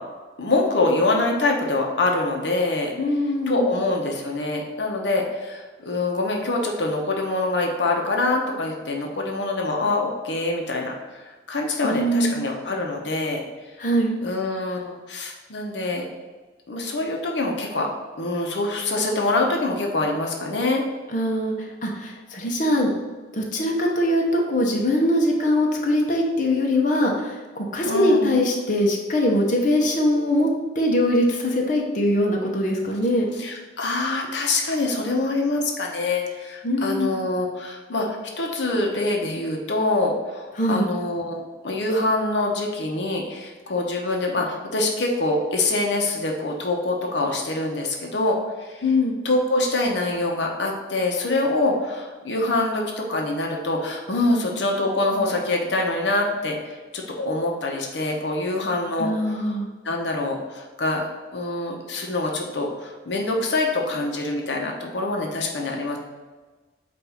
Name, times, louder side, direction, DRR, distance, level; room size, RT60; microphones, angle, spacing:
voice 1, 0.4-2.9 3.5-13.4 14.2-16.1 16.7-17.9 18.2-20.8 27.8-28.3 33.3-38.1 38.4-48.9 49.2-59.6 59.8-61.1 61.3-66.0, left 2 dB, 85° left, 1 dB, 0.9 m, -25 dB
voice 2, 3.0-3.7 11.8-12.5 13.8-14.2 21.1-21.5 21.8-22.9 23.3-30.5 30.8-33.3 36.6-37.1 40.6-40.9 48.8-49.2 59.0-59.7, left 1 dB, 45° left, 0 dB, 0.9 m, -22 dB
8.0 x 2.7 x 4.9 m, 1.3 s
head